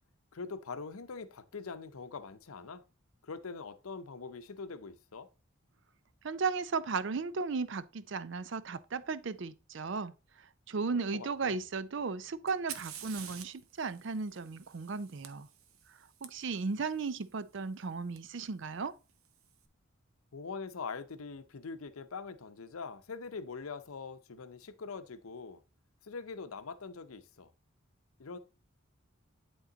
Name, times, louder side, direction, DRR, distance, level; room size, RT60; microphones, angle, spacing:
voice 1, 0.3-2.8 3.2-5.3 10.9-11.6 20.3-25.6 26.0-27.5 28.2-28.4, left 4 dB, 85° left, 0.7 m, -43 dB
voice 2, 6.2-10.1 10.7-15.5 16.2-18.9, right 4 dB, 60° right, 0.5 m, -35 dB
Fire, 12.5-16.3 18.2-18.3 19.1-19.5, right 9 dB, 85° right, 0.9 m, -48 dB
11.0 x 3.8 x 3.9 m
head